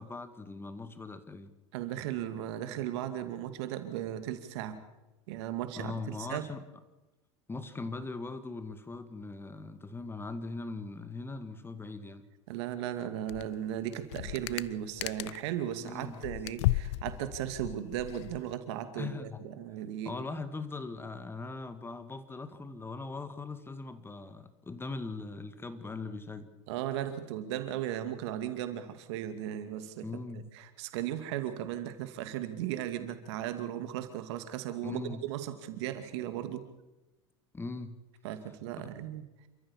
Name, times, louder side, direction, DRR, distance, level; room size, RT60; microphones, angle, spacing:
voice 1, 0.0-1.5 5.8-6.6 7.5-12.2 15.8-16.2 19.0-19.4 20.1-26.5 30.0-30.4 34.8-35.2 37.5-38.0 38.8-38.9, left 3 dB, 15° left, 11 dB, 1.9 m, -40 dB
voice 2, 1.7-4.8 5.3-5.9 6.2-6.5 12.5-20.1 26.7-30.1 30.3-36.6 38.2-39.2, right 11 dB, 70° right, 9 dB, 2.4 m, -36 dB
sound 1, 13.3-13.6 13.9-15.5 15.9-18.5, left 17 dB, 70° left, 0.7 m, -35 dB
28.5 x 14.0 x 7.3 m, 1.0 s
hypercardioid pair, 95°, 15 cm